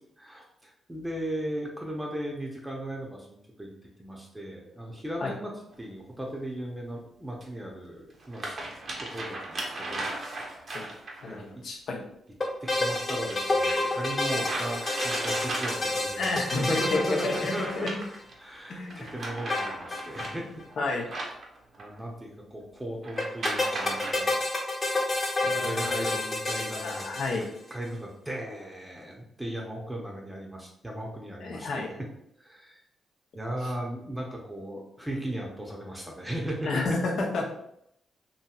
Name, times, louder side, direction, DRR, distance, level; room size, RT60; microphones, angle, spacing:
voice 1, 0.2-3.7 4.0-5.5 5.8-8.5 9.0-10.5 11.3-11.5 12.6-17.9 18.4-20.5 20.9-21.0 21.7-24.4 25.4-27.0 27.3-27.4 27.7-31.9 32.4-32.8 33.3-37.0, right 1 dB, 15° right, -1 dB, 0.7 m, -37 dB
sound 1, 5.7-5.8 7.4-7.5 8.1-11.3 13.2-16.1 17.2-18.3 18.9-22.0 23.0-24.1, right 2 dB, 55° right, 0.7 m, -37 dB
voice 2, 11.2-12.0 16.2-18.0 18.7-19.2 20.8-21.1 25.4-26.1 26.8-27.5 31.4-31.9 33.6-33.7 36.6-37.5, left 3 dB, 65° left, 0 dB, 0.6 m, -31 dB
sound 2, 12.4-18.2 19.5-20.3 20.6-20.7 20.9-21.0 23.2-27.7, left 2 dB, 40° left, 1.1 m, -29 dB
2.9 x 2.6 x 2.3 m, 0.75 s
supercardioid pair, 45°, 0 cm